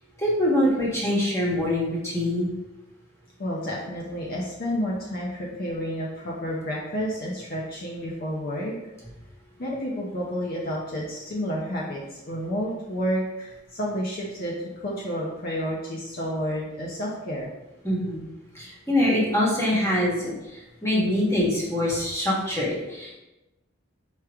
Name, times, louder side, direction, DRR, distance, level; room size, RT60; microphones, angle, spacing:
voice 1, 0.2-2.5 17.8-18.2 18.5-20.3 20.8-23.1, left 1 dB, 15° left, -5 dB, 1.3 m, -24 dB
voice 2, 3.4-8.7 9.6-14.6 14.8-17.5, equal, 50° left, -4 dB, 0.7 m, -30 dB
4.9 x 3.2 x 3.4 m, 1.0 s
head